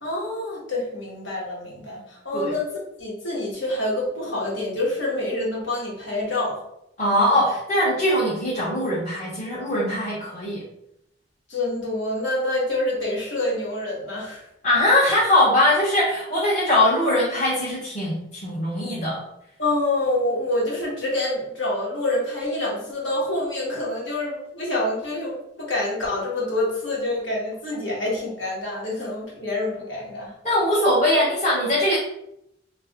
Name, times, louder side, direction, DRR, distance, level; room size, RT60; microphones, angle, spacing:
voice 1, 0.0-2.7 3.0-6.6 11.5-14.4 19.6-30.3, left 1 dB, 85° left, -4 dB, 1.5 m, -27 dB
voice 2, 7.0-10.6 14.6-19.2 30.4-32.0, left 1 dB, 40° left, -8 dB, 0.9 m, -21 dB
3.3 x 2.5 x 3.6 m, 0.79 s
head